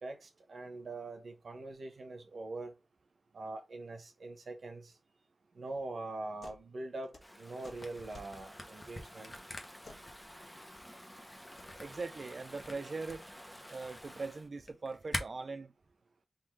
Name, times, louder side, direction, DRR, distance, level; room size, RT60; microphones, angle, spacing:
voice 1, 0.0-2.7 3.3-4.9 5.5-9.4, right 2 dB, 80° right, 1.0 m, -43 dB
sound 1, 6.4-6.7 6.9-8.4 9.8-10.1 11.4-11.7 12.9-13.2, left 2 dB, 70° left, 1.2 m, -54 dB
Stream / Ocean, 7.2-14.5, equal, 5° left, 0.8 m, -52 dB
Camera, 7.8-15.2, left 1 dB, 40° left, 0.9 m, -45 dB
voice 2, 11.8-13.3 13.7-15.7, right 3 dB, 60° right, 0.4 m, -41 dB
3.7 x 2.5 x 4.5 m
wide cardioid pair, 75°, 0 cm